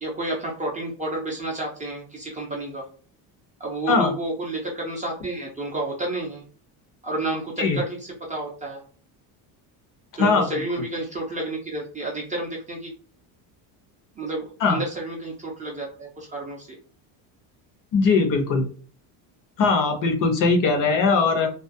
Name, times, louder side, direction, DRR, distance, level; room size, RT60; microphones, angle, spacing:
voice 1, 0.0-2.9 3.6-6.4 7.0-8.8 10.2-12.9 14.2-16.8, right 2 dB, 20° right, -2 dB, 0.5 m, -30 dB
voice 2, 17.9-18.7 19.6-21.5, left 4 dB, 45° left, 4 dB, 0.7 m, -20 dB
2.4 x 2.2 x 2.5 m, 0.42 s
cardioid pair, 140°, 43 cm